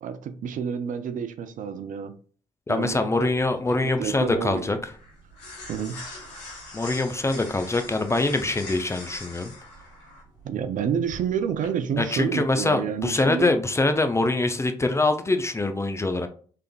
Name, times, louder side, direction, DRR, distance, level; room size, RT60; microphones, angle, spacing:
voice 1, 0.0-2.2 2.7-3.3 3.7-4.7 5.7-6.0 10.4-13.5, right 7 dB, 55° right, 10 dB, 0.4 m, -29 dB
voice 2, 2.7-4.8 6.7-9.5 12.0-16.3, left 2 dB, 15° left, 7 dB, 0.5 m, -24 dB
sound 1, 3.3-11.7, left 2 dB, 80° left, 1.0 m, -43 dB
3.3 x 3.2 x 2.3 m, 0.44 s
hypercardioid pair, 45°, 16 cm